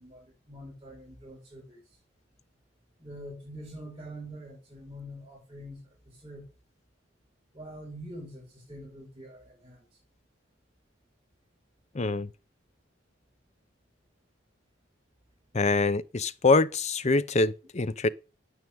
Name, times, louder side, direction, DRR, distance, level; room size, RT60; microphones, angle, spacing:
voice 1, 0.0-1.8 3.0-6.5 7.5-9.8, equal, 25° right, 6.6 m, -45 dB
voice 2, 11.9-12.3 15.5-18.1, left 3 dB, 35° left, 0.7 m, -24 dB
9.5 x 9.1 x 8.7 m
head